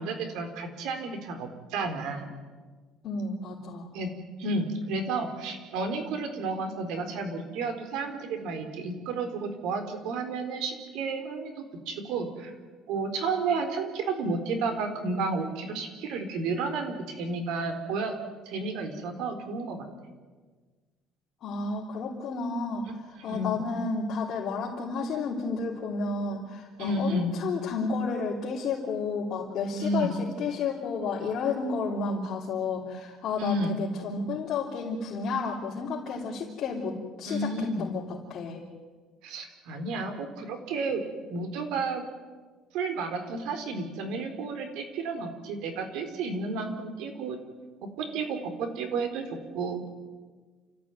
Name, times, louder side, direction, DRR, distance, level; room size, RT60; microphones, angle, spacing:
voice 1, 0.0-2.3 3.9-4.1 4.4-12.5 12.9-18.2 18.5-19.9 23.2-23.6 26.8-27.3 29.8-30.1 33.4-33.7 37.3-37.9 39.2-42.0 42.7-47.4 48.0-49.9, right 3 dB, 85° right, 7 dB, 4.3 m, -31 dB
voice 2, 3.0-3.9 21.4-38.6, left 4 dB, 45° left, -5 dB, 3.6 m, -32 dB
29.5 x 14.5 x 9.4 m, 1.4 s
cardioid pair, 170°, 0 cm